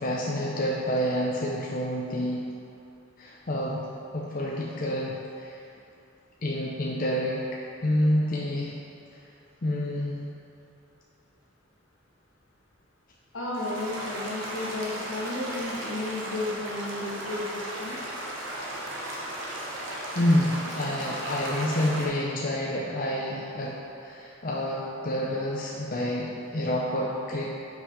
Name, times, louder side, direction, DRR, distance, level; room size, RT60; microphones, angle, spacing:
voice 1, 0.0-2.4 3.2-3.9 4.1-5.6 6.4-7.4 7.8-8.7 9.6-10.2 20.1-27.5, left 1 dB, 45° left, -3 dB, 0.6 m, -28 dB
voice 2, 13.3-18.0, left 2 dB, 85° left, -5 dB, 1.6 m, -33 dB
sound 1, 13.5-22.1, right 1 dB, 75° right, 1.2 m, -36 dB
5.7 x 5.4 x 5.4 m, 2.8 s
head